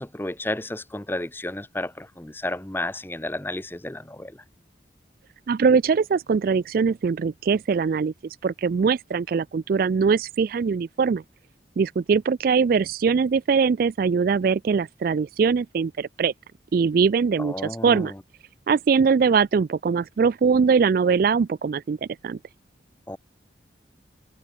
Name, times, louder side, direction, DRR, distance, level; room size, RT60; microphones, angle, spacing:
voice 1, 0.0-4.4 17.4-18.2 23.1-23.2, left 1 dB, 10° left, 0.9 m, -32 dB
voice 2, 5.5-8.1 8.4-11.2 11.8-16.3 16.7-17.5 17.8-18.1 18.7-22.4, right 5 dB, 55° right, 0.3 m, -22 dB
head